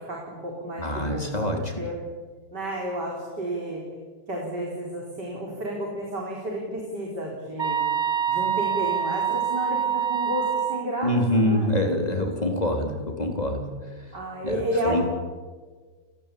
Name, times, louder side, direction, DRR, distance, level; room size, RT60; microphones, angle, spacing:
voice 1, 0.0-1.3 1.8-2.0 2.5-3.8 4.3-7.8 8.3-11.8 14.1-15.0, right 1 dB, 60° right, -1 dB, 5.1 m, -31 dB
voice 2, 0.8-1.7 11.0-13.7 14.4-15.0, left 1 dB, 20° left, 3 dB, 3.7 m, -25 dB
sound 1, 7.6-10.9, right 8 dB, 30° right, 1.3 m, -25 dB
29.5 x 18.5 x 8.6 m, 1.4 s
omnidirectional pair, 2.1 m